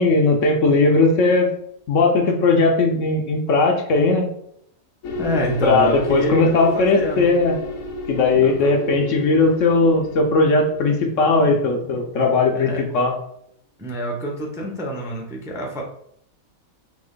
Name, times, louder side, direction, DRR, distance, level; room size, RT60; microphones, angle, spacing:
voice 1, 0.0-1.5 1.9-4.3 5.6-7.6 8.1-13.1, left 3 dB, 65° left, 2 dB, 1.0 m, -18 dB
sound 1, 5.0-12.1, left 2 dB, 85° left, 1.2 m, -32 dB
voice 2, 5.2-6.4 6.7-7.3 8.4-8.7 12.5-12.8 13.8-15.8, equal, 5° right, -1 dB, 0.5 m, -27 dB
4.1 x 2.9 x 3.7 m, 0.72 s
omnidirectional pair, 1.5 m